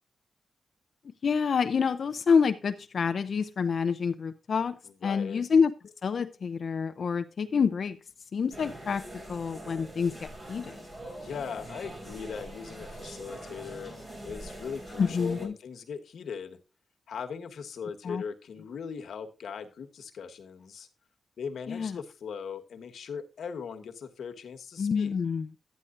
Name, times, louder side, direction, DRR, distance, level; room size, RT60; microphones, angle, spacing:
voice 1, 1.2-8.0 8.3-9.0 9.3-10.8 15.0-15.5 18.0-18.2 21.7-22.0 24.8-25.5, left 6 dB, 55° left, 10 dB, 0.6 m, -27 dB
voice 2, 5.0-5.4 11.2-13.9 14.2-16.6 17.1-20.9 21.4-25.2, left 6 dB, 75° left, 6 dB, 1.3 m, -39 dB
sound 1, 8.5-15.5, right 1 dB, 35° right, 4.6 m, -43 dB
11.5 x 9.8 x 2.5 m, 0.32 s
cardioid pair, 100°, 0 cm